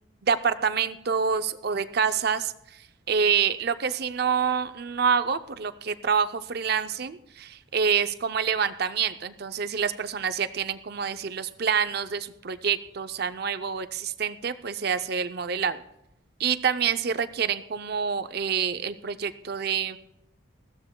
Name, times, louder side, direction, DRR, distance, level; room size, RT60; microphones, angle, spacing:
voice 1, 0.2-2.5 3.1-15.8 16.4-20.0, right 6 dB, 50° right, 11 dB, 0.5 m, -27 dB
20.5 x 15.0 x 2.2 m, 0.82 s
head